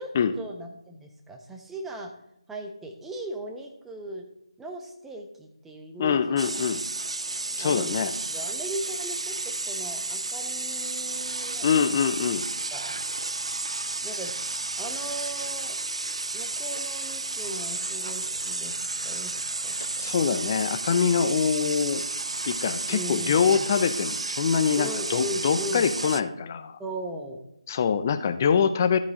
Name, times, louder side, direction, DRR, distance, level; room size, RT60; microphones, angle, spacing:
voice 1, 0.4-2.1 2.5-4.2 4.6-6.5 7.6-8.0 8.3-11.6 12.7-13.0 14.0-14.3 14.8-15.8 16.3-19.7 20.0-20.1 22.9-23.7 24.8-25.9 26.8-27.4, right 1 dB, 5° right, 2 dB, 1.1 m, -38 dB
voice 2, 6.0-6.8 7.6-8.1 11.6-12.4 20.0-22.0 22.4-26.8 27.7-29.0, left 7 dB, 30° left, 11 dB, 0.7 m, -24 dB
sound 1, 6.4-26.2, right 3 dB, 70° right, 0.6 m, -32 dB
13.5 x 8.4 x 3.9 m, 0.76 s
figure-of-eight pair, 155°, 3 cm